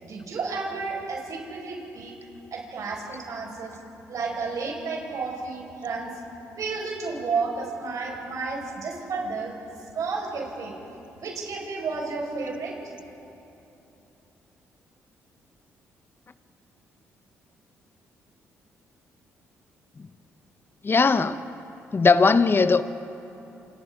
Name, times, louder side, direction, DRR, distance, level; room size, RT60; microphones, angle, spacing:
voice 1, 0.0-2.1 2.5-3.7 4.1-6.2 6.5-9.5 9.9-10.7 11.2-12.7, right 4 dB, 60° right, 5.0 m, -31 dB
voice 2, 20.8-21.4 21.9-22.8, left 4 dB, 35° left, 0.9 m, -19 dB
28.0 x 27.5 x 3.7 m
hypercardioid pair, 45°, 6 cm